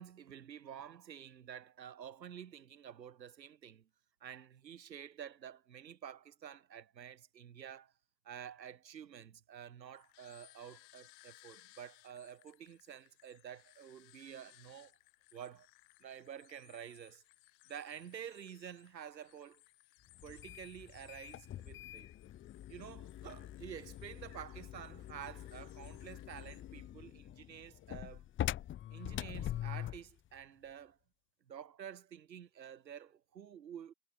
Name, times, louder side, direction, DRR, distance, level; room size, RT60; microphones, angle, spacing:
voice 1, 0.0-3.9 4.2-7.9 8.2-14.9 15.3-15.7 16.0-17.2 17.7-19.6 20.2-22.1 22.7-28.2 28.9-31.0 31.5-33.9, right 9 dB, 85° right, 3.1 m, -50 dB
sound 1, 9.9-26.6, left 40 dB or more, 55° left, 7.4 m, -64 dB
sound 2, 20.2-30.1, left 12 dB, 25° left, 1.0 m, -44 dB
hypercardioid pair, 100°, 49 cm